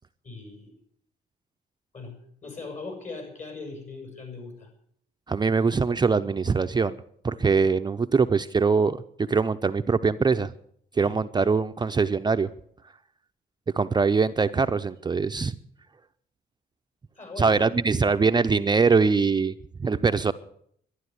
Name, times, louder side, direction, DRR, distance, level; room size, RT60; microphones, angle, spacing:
voice 1, 0.2-0.7 1.9-2.2 2.4-4.7 11.0-11.2 17.2-17.7, left 3 dB, 45° left, 4 dB, 7.4 m, -39 dB
voice 2, 5.3-7.0 7.2-9.0 9.3-10.5 10.9-12.5 13.7-15.5 17.4-19.5 19.8-20.3, right 4 dB, 25° right, 9 dB, 0.6 m, -22 dB
12.0 x 11.5 x 9.5 m, 0.65 s
cardioid pair, 90°, 17 cm